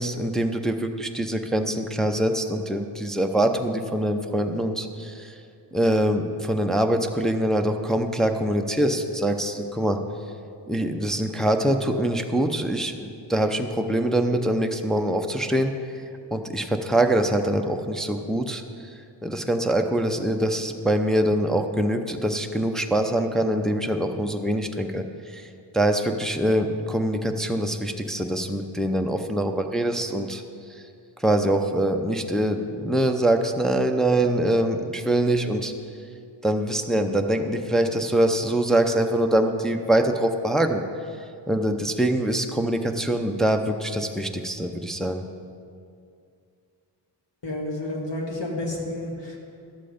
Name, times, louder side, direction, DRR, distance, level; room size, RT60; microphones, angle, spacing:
voice 1, 0.0-5.3 5.7-10.0 10.7-15.7 16.3-18.6 19.2-25.5 25.7-30.4 31.2-35.7 36.4-40.8 41.5-45.2, right 1 dB, ahead, 4 dB, 0.6 m, -24 dB
voice 2, 47.4-49.4, left 1 dB, 70° left, -1 dB, 2.0 m, -30 dB
12.0 x 7.4 x 5.1 m, 2.4 s
wide cardioid pair, 80°, 45 cm